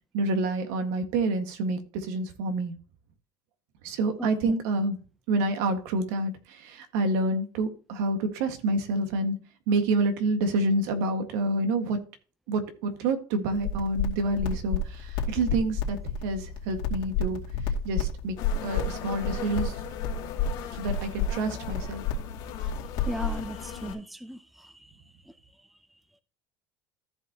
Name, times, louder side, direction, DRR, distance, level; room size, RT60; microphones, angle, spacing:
voice 1, 0.1-2.7 3.8-5.0 5.3-9.4 9.7-12.0 12.5-16.0 16.2-17.4 17.8-18.4 18.6-19.8 20.7-22.1, right 2 dB, 80° right, 7 dB, 1.7 m, -28 dB
voice 2, 4.2-4.5 23.1-24.4, equal, ahead, 11 dB, 0.5 m, -36 dB
sound 1, 13.5-23.9, left 4 dB, 75° left, 2.5 m, -31 dB
sound 2, 18.4-23.9, left 10 dB, 55° left, 2.0 m, -40 dB
14.5 x 5.5 x 2.9 m, 0.37 s
cardioid pair, 160°, 9 cm